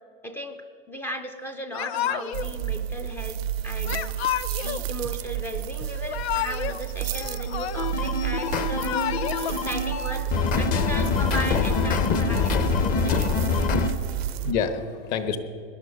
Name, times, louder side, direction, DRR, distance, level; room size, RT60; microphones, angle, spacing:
voice 1, 0.2-0.6 0.9-4.2 4.6-9.2 9.5-13.7, equal, 5° left, 6 dB, 0.4 m, -36 dB
Yell / Crying sobbing, 1.7-2.5 3.8-4.8 5.9-6.8 7.1-8.1 8.6-9.5, left 11 dB, 80° left, 0.7 m, -30 dB
sound 1, 2.3-14.5, right 11 dB, 75° right, 0.6 m, -32 dB
voice 2, 7.0-7.7 8.1-8.5 13.2-15.4, left 6 dB, 45° left, 10 dB, 1.3 m, -32 dB
sound 2, 7.8-13.9, left 5 dB, 25° left, 0.8 m, -24 dB
18.5 x 11.5 x 5.7 m, 2.7 s
supercardioid pair, 150°, 31 cm